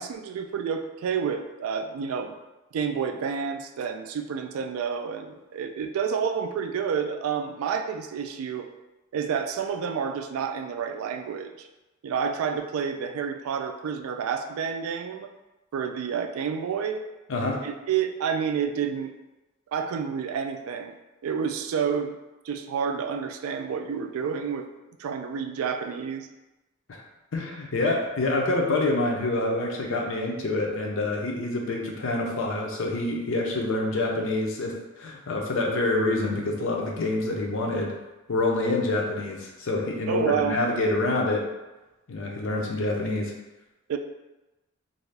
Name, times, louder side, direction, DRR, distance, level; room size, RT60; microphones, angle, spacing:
voice 1, 0.0-2.3 2.7-8.7 9.1-11.7 12.0-15.3 15.7-17.0 17.6-19.1 19.7-20.9 21.2-22.2 22.5-24.7 25.0-26.3 40.1-40.6 43.9-44.0, right 6 dB, 75° right, 6 dB, 0.3 m, -29 dB
voice 2, 27.3-37.9 38.3-41.5 42.1-43.3, left 2 dB, 65° left, 0 dB, 0.6 m, -26 dB
2.6 x 2.4 x 3.3 m, 1.0 s
head